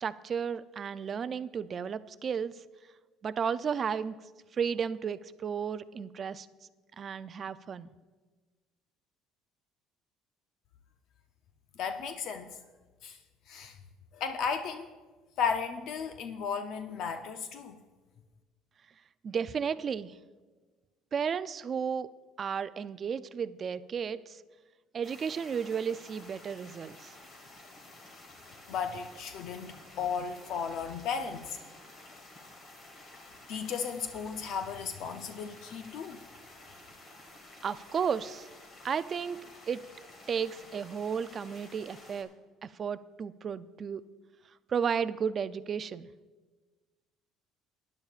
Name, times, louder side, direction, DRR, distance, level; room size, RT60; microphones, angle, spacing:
voice 1, 0.0-2.5 3.2-4.2 4.6-6.5 7.0-7.9 19.2-20.1 21.1-22.1 22.4-24.4 24.9-27.1 37.6-38.5 38.8-39.8 40.3-42.3 42.6-44.0 44.7-46.1, right 7 dB, 30° right, 14 dB, 0.3 m, -33 dB
voice 2, 11.8-12.6 13.0-13.2 13.5-13.8 14.1-14.9 15.4-17.8 28.7-31.6 33.5-36.2, left 6 dB, 60° left, 7 dB, 0.5 m, -35 dB
sound 1, 25.0-42.2, left 2 dB, 35° left, 1.7 m, -52 dB
19.0 x 10.5 x 2.4 m, 1.3 s
cardioid pair, 145°, 0 cm